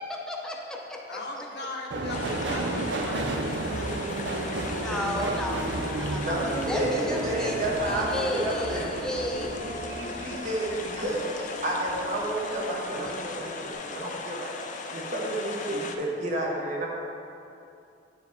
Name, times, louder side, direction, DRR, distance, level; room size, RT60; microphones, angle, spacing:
voice 1, 0.1-1.2 4.7-6.4 6.7-9.5, left 1 dB, 5° left, -1 dB, 0.7 m, -33 dB
voice 2, 1.1-4.8, left 2 dB, 65° left, 0 dB, 0.9 m, -40 dB
Subway metro underground, 1.9-12.6 13.0-13.7 14.0-14.1, right 2 dB, 70° right, 0.5 m, -33 dB
sound 1, 2.1-16.0, left 4 dB, 45° left, 0.5 m, -38 dB
voice 3, 6.0-8.9 9.6-14.5 14.9-16.9, right 1 dB, 45° right, -3 dB, 1.1 m, -31 dB
sound 2, 6.3-13.7, equal, 85° right, 1.5 m, -43 dB
9.6 x 4.6 x 3.5 m, 2.6 s
head